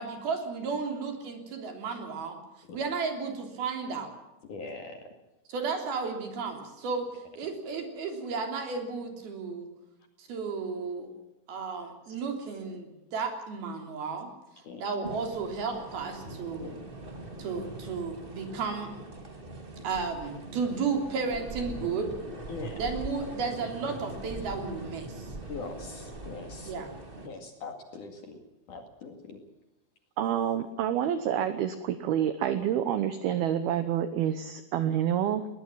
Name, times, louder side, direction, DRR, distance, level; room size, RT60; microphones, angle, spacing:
voice 1, 0.0-2.4 2.7-4.1 5.5-7.1 7.4-9.7 10.2-11.1 11.5-14.3 14.8-16.7 17.4-18.9 19.8-22.1 22.7-25.3 26.6-26.9, right 5 dB, 55° right, 4 dB, 5.0 m, -33 dB
voice 2, 4.4-5.0 14.6-14.8 16.6-16.7 22.5-22.8 24.4-24.5 25.4-26.7 27.2-28.4 28.7-29.4, left 3 dB, 50° left, 5 dB, 3.1 m, -41 dB
sound 1, 15.0-27.3, right 1 dB, 25° right, 1.3 m, -42 dB
voice 3, 30.2-35.5, right 10 dB, 70° right, 11 dB, 2.5 m, -28 dB
21.0 x 19.0 x 7.4 m, 0.97 s
omnidirectional pair, 5.5 m